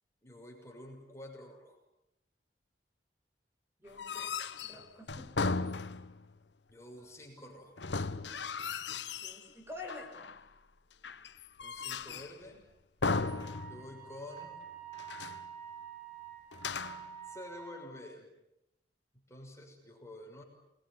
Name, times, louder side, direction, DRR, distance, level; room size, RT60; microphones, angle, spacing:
voice 1, 0.2-1.8 6.7-7.7 11.6-12.7 13.7-14.6 17.3-18.3 19.1-20.4, left 1 dB, 15° left, 0 dB, 6.3 m, -49 dB
voice 2, 3.8-5.3 9.2-10.1, left 2 dB, 15° right, 1 dB, 5.7 m, -47 dB
sound 1, 3.9-6.3 7.8-9.5 9.9-10.5 11.0-12.4 13.0-14.1 14.4-14.5 14.9-15.5 16.5-17.2, left 4 dB, 80° left, 1.1 m, -36 dB
Wind instrument woodwind instrument, 13.1-17.9, right 8 dB, 50° right, 5.9 m, -48 dB
29.0 x 21.5 x 9.7 m, 0.87 s
head